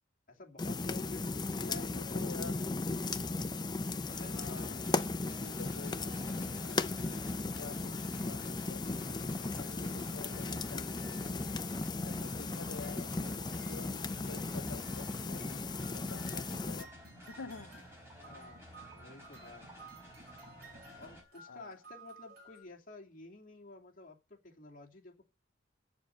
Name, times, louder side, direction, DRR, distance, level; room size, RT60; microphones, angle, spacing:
voice 1, 0.3-2.9 3.9-4.7 18.3-18.7 18.9-19.9 21.0-25.3, left 2 dB, 45° left, 2.8 m, -52 dB
sound 1, 0.6-16.8, left 3 dB, 20° left, 0.5 m, -36 dB
voice 2, 1.6-2.7 4.3-7.2 7.6-11.5 12.0-17.7 21.5-21.8, left 4 dB, 90° left, 0.6 m, -49 dB
sound 2, 4.1-21.2, equal, 10° right, 4.4 m, -53 dB
sound 3, 16.1-22.6, right 4 dB, 50° right, 5.6 m, -56 dB
8.3 x 7.3 x 8.6 m
head